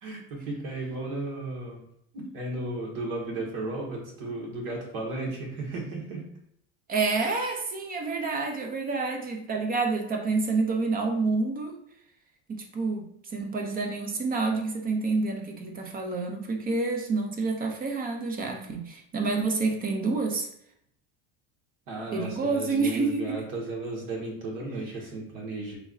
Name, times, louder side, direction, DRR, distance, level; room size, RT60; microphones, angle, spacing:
voice 1, 0.0-1.8 2.1-6.2 21.9-25.8, right 2 dB, 65° right, -1 dB, 1.4 m, -34 dB
voice 2, 6.9-11.7 12.5-20.5 22.1-23.4, right 3 dB, 25° right, 3 dB, 0.5 m, -28 dB
3.8 x 3.1 x 2.4 m, 0.73 s
cardioid pair, 140°, 36 cm